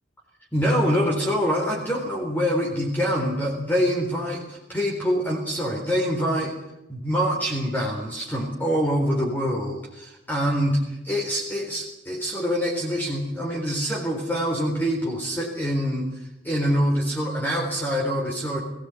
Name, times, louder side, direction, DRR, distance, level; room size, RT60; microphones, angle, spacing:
voice 1, 0.5-6.5 6.9-10.8 11.0-16.1 16.4-18.6, equal, 10° left, -2 dB, 3.9 m, -25 dB
20.5 x 17.0 x 9.7 m, 0.88 s
head